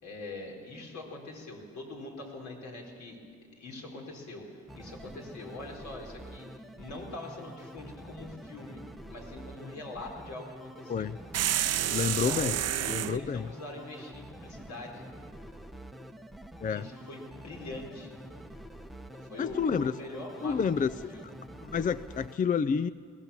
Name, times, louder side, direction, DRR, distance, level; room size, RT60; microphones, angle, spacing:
voice 1, 0.0-3.2 3.6-6.5 6.7-8.8 9.1-11.1 11.9-15.1 16.7-18.2 19.1-20.6 21.1-21.3, left 2 dB, 70° left, 0 dB, 4.6 m, -43 dB
sound 1, 4.7-22.4, right 1 dB, ahead, 0.9 m, -47 dB
sound 2, 11.3-13.2, right 11 dB, 55° right, 0.6 m, -29 dB
voice 2, 11.9-12.6 12.9-13.5 16.6-16.9 19.4-20.0 20.4-21.2 21.6-22.9, left 6 dB, 30° left, 15 dB, 0.4 m, -29 dB
21.0 x 17.0 x 7.2 m, 2.1 s
cardioid pair, 90°, 30 cm